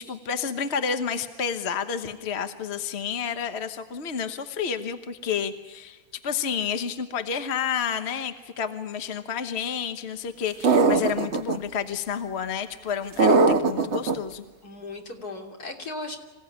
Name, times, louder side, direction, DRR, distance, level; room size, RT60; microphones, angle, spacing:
voice 1, 0.0-14.4, left 7 dB, 45° left, 9 dB, 1.4 m, -30 dB
sound 1, 10.6-11.6 13.2-14.1, right 4 dB, 50° right, 1.4 m, -19 dB
voice 2, 14.6-16.2, left 2 dB, 85° left, 2 dB, 3.6 m, -37 dB
26.5 x 16.5 x 10.0 m, 1.3 s
omnidirectional pair, 1.6 m